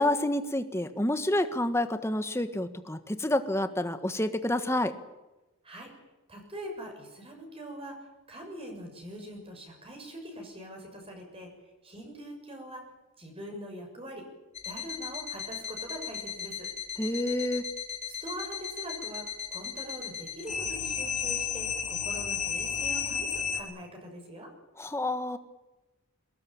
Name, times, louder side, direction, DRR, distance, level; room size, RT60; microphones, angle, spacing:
voice 1, 0.0-4.9 17.0-17.7 24.8-25.4, left 1 dB, 10° left, 9 dB, 1.5 m, -28 dB
voice 2, 6.3-11.5 11.8-12.8 13.2-14.2 14.6-16.7 18.2-24.5, right 1 dB, 25° right, 2 dB, 6.8 m, -43 dB
sound 1, 14.5-23.6, left 7 dB, 30° left, 3.5 m, -34 dB
23.0 x 19.5 x 8.8 m, 1.0 s
head